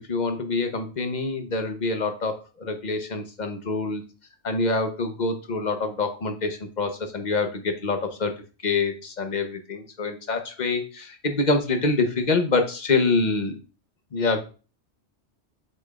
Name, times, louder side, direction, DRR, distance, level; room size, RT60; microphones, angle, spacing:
voice 1, 0.1-4.0 4.4-8.3 8.6-13.6 14.1-14.4, left 3 dB, 40° left, 6 dB, 1.0 m, -26 dB
8.0 x 5.3 x 2.4 m, 0.34 s
omnidirectional pair, 1.2 m